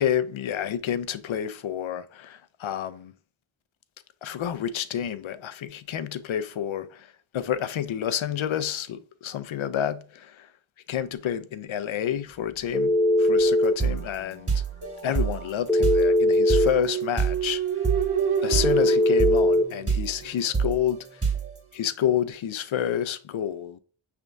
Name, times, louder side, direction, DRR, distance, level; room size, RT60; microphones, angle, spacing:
voice 1, 0.0-3.1 4.2-10.5 10.9-12.9 13.3-14.5 15.0-17.6 18.4-21.2 21.7-23.8, left 10 dB, 70° left, 0.6 m, -29 dB
Telephone, 12.7-13.8 15.7-16.7 18.6-19.7, left 1 dB, ahead, 0.6 m, -20 dB
sound 1, 13.4-18.9 19.2-21.6, right 6 dB, 30° right, 1.9 m, -28 dB
sound 2, 16.5-20.3, right 7 dB, 80° right, 0.7 m, -29 dB
5.8 x 3.4 x 2.5 m
cardioid pair, 50°, 50 cm